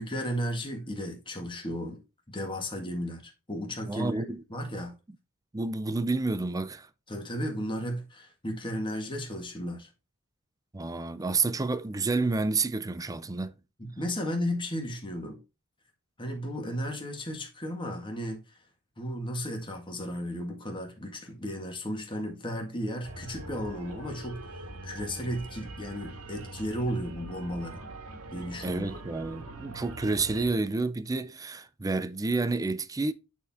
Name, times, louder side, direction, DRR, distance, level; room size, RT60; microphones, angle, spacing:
voice 1, 0.0-2.0 2.3-4.2 4.5-5.0 7.1-9.9 13.8-15.4 16.2-18.4 19.0-27.8 28.3-28.9, equal, 20° left, 1.8 m, -34 dB
voice 2, 3.9-4.4 5.5-6.9 10.7-13.6 28.6-33.1, right 3 dB, 15° right, 0.4 m, -29 dB
sound 1, 23.0-30.5, right 2 dB, 80° right, 1.7 m, -43 dB
9.2 x 4.4 x 3.6 m
head